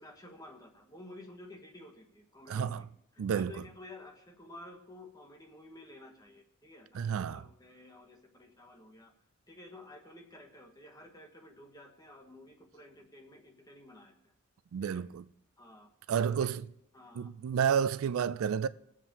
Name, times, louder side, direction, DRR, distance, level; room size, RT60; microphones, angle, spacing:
voice 1, 0.0-2.8 3.1-9.1 9.5-14.3 14.8-15.0 15.6-15.9 16.2-16.5 16.9-17.3, left 1 dB, 15° left, 1.1 m, -52 dB
voice 2, 2.5-2.8 3.2-3.5 6.9-7.4 14.7-15.2 16.1-16.6 17.1-18.7, right 7 dB, 80° right, 0.3 m, -30 dB
19.5 x 7.4 x 2.9 m
head